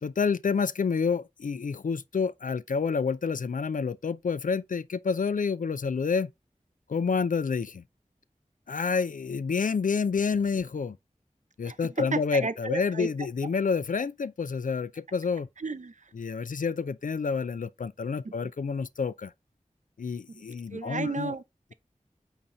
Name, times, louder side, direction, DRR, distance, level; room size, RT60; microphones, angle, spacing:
voice 1, 0.0-6.3 6.9-7.8 8.7-11.0 11.6-15.5 16.1-19.3 20.0-21.4, left 5 dB, 75° left, 0.4 m, -28 dB
voice 2, 11.7-13.1 15.6-16.1 18.2-18.5 20.3-20.4 20.7-21.4, right 4 dB, 65° right, 0.6 m, -33 dB
8.6 x 2.9 x 3.7 m
wide cardioid pair, 45°, 14 cm